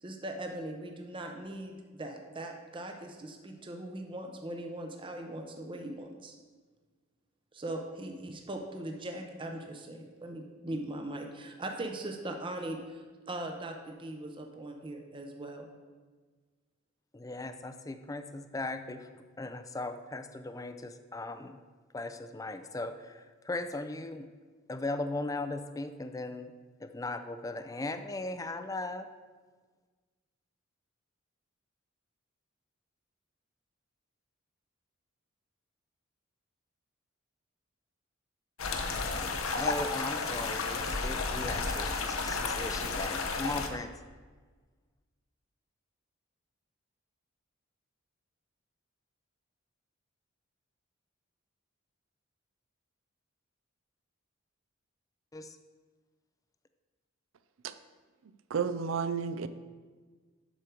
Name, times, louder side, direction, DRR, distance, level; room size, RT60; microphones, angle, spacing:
voice 1, 0.0-6.3 7.5-15.7, right 1 dB, 25° right, 3 dB, 0.6 m, -40 dB
voice 2, 17.1-21.6 21.9-24.3 24.7-26.5 26.8-29.1 39.5-43.9 55.3-55.6, left 2 dB, 15° left, 9 dB, 0.4 m, -38 dB
sound 1, 38.6-43.7, left 4 dB, 85° left, 0.8 m, -32 dB
voice 3, 58.5-59.5, right 6 dB, 75° right, 13 dB, 0.4 m, -31 dB
8.1 x 6.4 x 4.5 m, 1.4 s
head